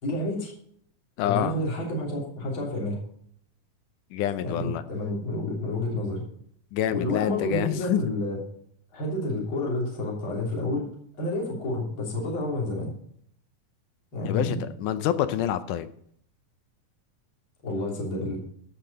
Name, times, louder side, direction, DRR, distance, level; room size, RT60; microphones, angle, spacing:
voice 1, 0.0-0.5 1.2-3.0 4.4-6.2 6.9-8.4 8.9-10.9 11.2-12.9 14.1-14.6 17.6-18.4, left 1 dB, 35° left, -2 dB, 3.6 m, -29 dB
voice 2, 1.2-1.5 4.1-4.8 6.7-8.1 14.2-15.9, left 11 dB, 75° left, 11 dB, 2.0 m, -27 dB
14.0 x 5.9 x 5.4 m, 0.66 s
omnidirectional pair, 4.0 m